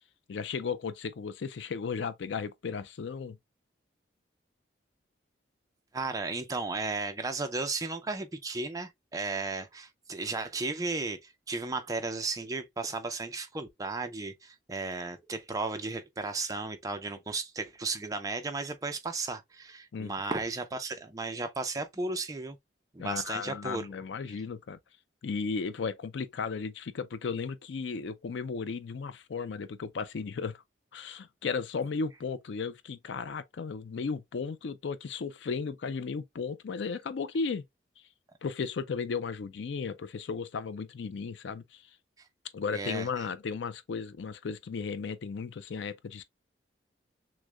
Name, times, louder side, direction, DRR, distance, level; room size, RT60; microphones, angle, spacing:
voice 1, 0.3-3.4 19.9-20.1 23.0-24.8 25.2-30.6 30.9-37.6 38.4-41.9 42.5-46.2, left 5 dB, 75° left, 0.4 m, -35 dB
voice 2, 5.9-22.6 22.9-23.9 42.7-43.2, right 3 dB, 20° right, 0.5 m, -34 dB
6.2 x 2.1 x 2.2 m
head